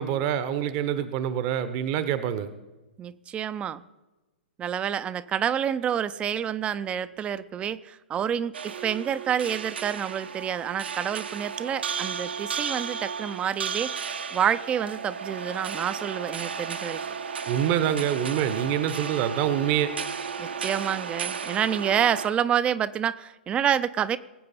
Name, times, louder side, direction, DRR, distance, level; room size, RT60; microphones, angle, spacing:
voice 1, 0.0-2.5 17.5-19.9, right 10 dB, 40° right, 12 dB, 0.9 m, -26 dB
voice 2, 3.0-3.8 4.6-8.5 8.8-17.0 20.4-24.2, right 9 dB, 20° right, 15 dB, 0.5 m, -28 dB
sound 1, 8.5-22.3, right 6 dB, 75° right, 1.0 m, -34 dB
20.5 x 8.5 x 4.2 m, 1.1 s
figure-of-eight pair, 115°, 6 cm